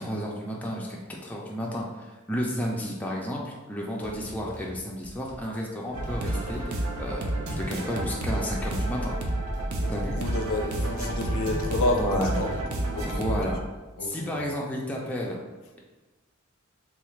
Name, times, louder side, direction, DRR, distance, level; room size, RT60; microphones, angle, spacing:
voice 1, 0.0-9.1 9.9-10.1 11.9-12.4 13.0-13.6 14.0-15.4, equal, 5° left, -3 dB, 0.3 m, -32 dB
sound 1, 4.0-12.0, equal, 40° right, 0.6 m, -45 dB
sound 2, 5.9-13.6, right 1 dB, 85° right, 0.5 m, -30 dB
voice 2, 9.8-12.6 12.9-13.2 14.0-14.4, left 2 dB, 75° left, 3 dB, 0.5 m, -30 dB
3.5 x 2.4 x 3.1 m, 1.2 s
head